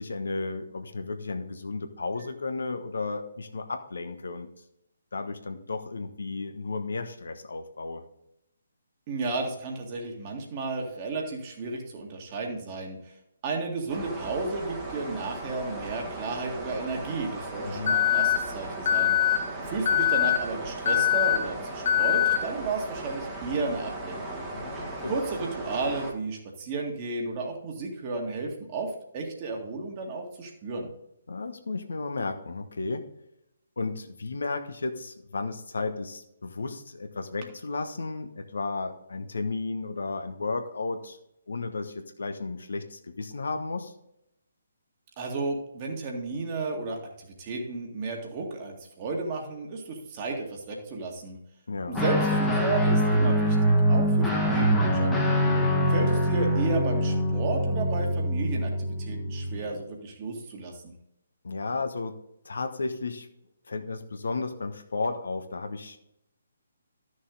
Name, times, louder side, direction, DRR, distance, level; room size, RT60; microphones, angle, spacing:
voice 1, 0.0-4.5 5.1-8.0 17.6-18.0 24.5-25.2 31.3-33.1 33.8-41.2 41.5-43.9 51.7-52.0 55.5-55.8 61.4-62.2 62.4-63.3 63.7-66.0, left 3 dB, 60° left, 7 dB, 1.1 m, -33 dB
voice 2, 9.1-13.0 13.4-19.2 19.6-24.5 25.1-30.9 45.2-51.4 51.9-55.1 55.8-60.9, right 3 dB, 30° right, 1 dB, 2.1 m, -33 dB
sound 1, 13.9-26.1, right 2 dB, 10° right, 1.5 m, -37 dB
Alarm, 17.9-18.4 18.9-19.4 19.9-20.4 20.9-21.4 21.9-22.4, left 11 dB, 40° left, 1.5 m, -22 dB
Guitar, 51.9-59.6, equal, 5° left, 1.5 m, -24 dB
12.5 x 6.4 x 3.9 m, 0.81 s
figure-of-eight pair, 140°, 0 cm